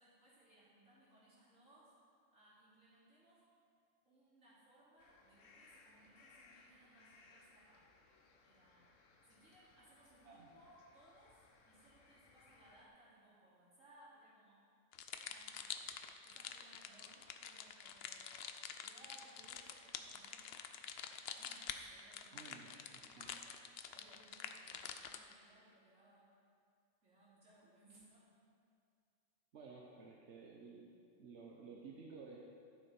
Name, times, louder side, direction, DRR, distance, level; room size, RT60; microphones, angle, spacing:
voice 1, 0.0-1.9 2.3-3.5 4.1-7.9 8.4-8.9 9.2-14.6 15.3-15.7 16.2-18.5 18.7-20.6 21.1-23.4 23.9-26.3 27.0-28.3, right 1 dB, 85° right, -10 dB, 3.5 m, -66 dB
sound 1, 5.0-12.9, left 3 dB, 85° left, 1.2 m, -66 dB
sound 2, 14.9-25.3, left 8 dB, 65° left, 0.7 m, -48 dB
voice 2, 22.3-23.3 29.5-30.9 31.2-32.4, right 4 dB, 65° right, -2 dB, 1.2 m, -54 dB
12.5 x 7.1 x 4.4 m, 2.4 s
omnidirectional pair, 1.3 m